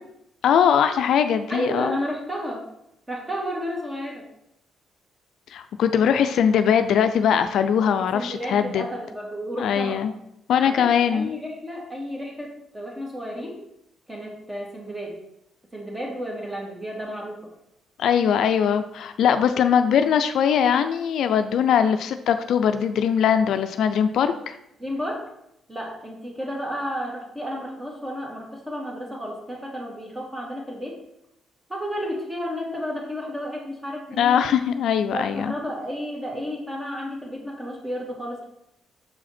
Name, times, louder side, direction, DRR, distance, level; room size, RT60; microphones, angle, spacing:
voice 1, 0.4-2.0 5.5-8.8 9.6-10.1 10.5-11.3 18.0-24.6 34.2-35.5, left 8 dB, 75° left, 9 dB, 0.4 m, -21 dB
voice 2, 1.5-2.6 3.1-4.2 8.0-10.1 10.6-13.6 14.1-15.2 15.7-17.4 24.8-25.3 25.7-31.0 31.7-34.5 35.1-38.4, equal, 15° right, -2 dB, 2.2 m, -32 dB
6.3 x 4.9 x 4.3 m, 0.82 s
cardioid pair, 90°, 0 cm